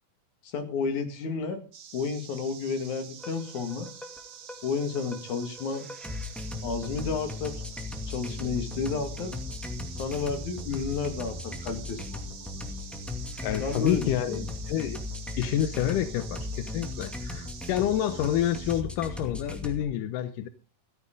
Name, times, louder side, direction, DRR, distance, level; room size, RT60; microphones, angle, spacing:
voice 1, 0.4-1.6 1.9-3.9 4.6-5.9 6.6-7.5 8.1-9.3 10.0-12.5 13.6-14.5, left 5 dB, 55° left, 3.2 m, -31 dB
sound 1, 1.7-18.8, right 8 dB, 70° right, 1.2 m, -47 dB
sound 2, 3.2-19.9, left 2 dB, ahead, 0.7 m, -38 dB
voice 2, 13.4-15.0 15.4-20.5, left 11 dB, 75° left, 2.0 m, -28 dB
16.0 x 14.0 x 3.8 m
omnidirectional pair, 4.6 m